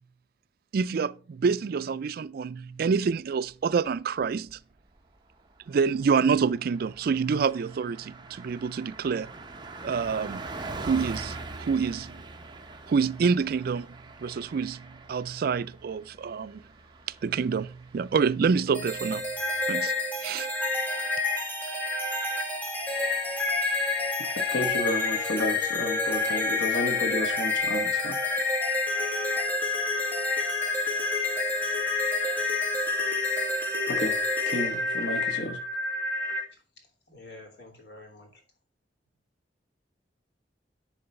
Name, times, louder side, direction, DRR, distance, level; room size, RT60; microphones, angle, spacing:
voice 1, 0.7-4.6 5.7-9.3 9.8-10.4 10.8-12.2 12.9-13.9 14.2-16.6 17.2-19.3 19.7-19.9 20.2-20.5, right 5 dB, 55° right, 0.4 m, -27 dB
Car passing by, 4.0-4.6 5.0-5.1 5.4-19.7, right 3 dB, 25° right, 0.9 m, -43 dB
sound 1, 18.7-36.4, left 3 dB, 10° left, 1.8 m, -28 dB
voice 2, 24.2-28.2 33.9-34.2 34.5-35.6, left 1 dB, 90° left, 1.2 m, -32 dB
voice 3, 36.8-38.4, left 2 dB, 70° left, 2.9 m, -49 dB
10.5 x 3.9 x 5.4 m
head